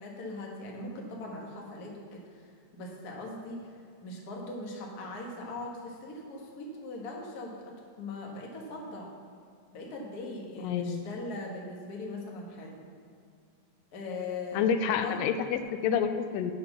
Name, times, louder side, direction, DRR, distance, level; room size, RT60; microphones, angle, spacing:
voice 1, 0.0-9.1 9.7-12.7 13.9-15.2, left 2 dB, 50° left, -1 dB, 1.2 m, -40 dB
voice 2, 10.6-11.1 14.5-16.5, left 7 dB, 90° left, 9 dB, 2.3 m, -28 dB
8.1 x 8.0 x 6.1 m, 2.3 s
omnidirectional pair, 3.8 m